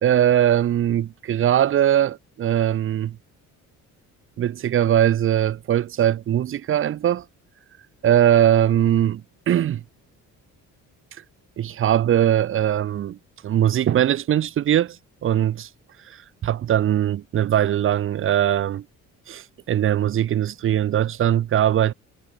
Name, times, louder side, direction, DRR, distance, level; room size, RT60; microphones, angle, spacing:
voice 1, 0.0-3.2 4.4-7.2 8.0-9.8 11.6-13.2 13.4-15.0 15.2-15.7 16.1-18.8 19.3-21.9, right 11 dB, 40° right, 0.6 m, -20 dB
cardioid pair, 140°, 33 cm